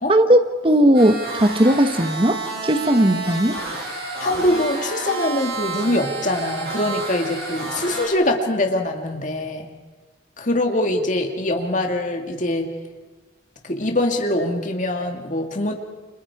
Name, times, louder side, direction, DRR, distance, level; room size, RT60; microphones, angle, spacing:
voice 1, 0.1-3.6, right 1 dB, 30° right, 9 dB, 1.2 m, -17 dB
sound 1, 0.9-8.1, right 3 dB, 55° right, 7.4 m, -30 dB
voice 2, 4.2-9.7 10.4-12.7 13.6-15.7, left 1 dB, 45° left, 3 dB, 2.3 m, -23 dB
29.5 x 26.0 x 4.9 m, 1.2 s
head